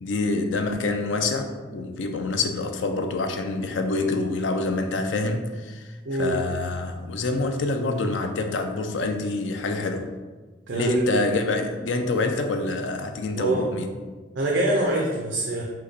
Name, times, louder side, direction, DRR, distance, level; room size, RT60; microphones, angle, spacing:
voice 1, 0.0-10.1 10.7-13.9, left 3 dB, 85° left, 6 dB, 0.5 m, -26 dB
voice 2, 6.0-6.4 10.7-11.0 13.3-13.7 14.4-15.6, right 1 dB, 75° right, -2 dB, 0.6 m, -24 dB
5.5 x 2.2 x 4.0 m, 1.3 s
head